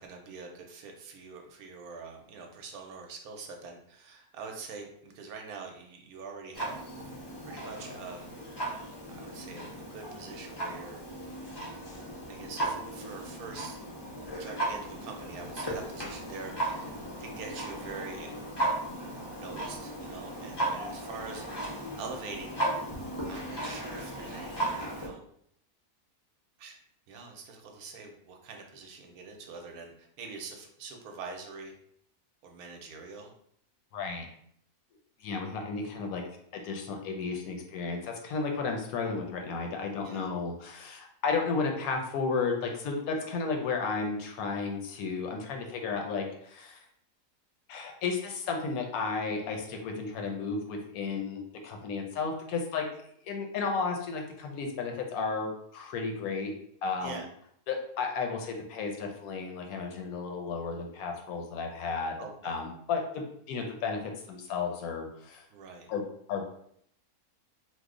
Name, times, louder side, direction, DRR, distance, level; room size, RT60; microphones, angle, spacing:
voice 1, 0.0-7.1 7.4-8.3 8.6-8.8 9.1-11.0 12.3-13.8 14.4-18.3 19.3-21.5 22.0-22.9 23.3-25.2 26.6-26.8 27.1-31.7 32.4-33.3 40.0-40.3 57.0-57.3 62.2-62.6 65.5-65.9, right 4 dB, 75° right, 3 dB, 1.0 m, -44 dB
Clock, 6.5-25.1, right 1 dB, 45° left, 0.3 m, -36 dB
voice 2, 33.9-34.3 35.2-36.2 36.5-46.8 47.7-52.8 53.2-56.5 56.8-57.2 57.7-62.2 62.4-64.0 64.3-65.4 65.9-66.0 66.3-66.4, left 4 dB, 75° left, 2 dB, 1.0 m, -33 dB
3.0 x 2.0 x 3.6 m, 0.69 s
omnidirectional pair, 1.6 m